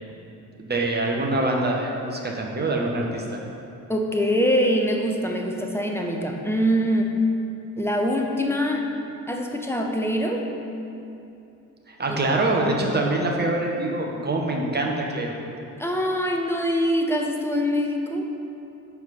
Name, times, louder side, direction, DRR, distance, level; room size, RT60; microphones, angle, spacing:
voice 1, 0.6-3.4 11.9-15.4, right 2 dB, 20° right, -1 dB, 1.3 m, -25 dB
voice 2, 3.9-7.2 7.8-8.9 9.3-10.4 12.1-12.2 15.8-18.3, equal, 5° left, 1 dB, 1.0 m, -24 dB
12.5 x 4.7 x 4.2 m, 2.7 s
figure-of-eight pair, 45°, 47 cm